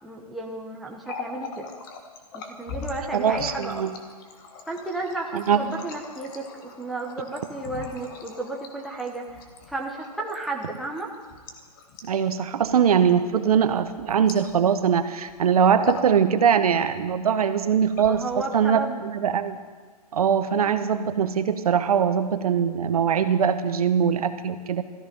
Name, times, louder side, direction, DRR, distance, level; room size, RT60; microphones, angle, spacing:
voice 1, 0.0-1.6 2.3-3.9 4.7-9.3 9.7-11.1 18.0-19.0, right 2 dB, ahead, -2 dB, 1.1 m, -33 dB
Water tap faucet, 0.9-14.9 15.2-15.4 15.7-16.2 16.5-17.1 17.8-18.6, left 5 dB, 30° left, 1.6 m, -40 dB
voice 2, 3.1-3.9 5.3-5.6 12.0-18.2 18.5-19.6 20.1-24.8, right 7 dB, 65° right, 10 dB, 1.1 m, -22 dB
16.0 x 14.0 x 5.4 m, 1.5 s
hypercardioid pair, 155°, 20 cm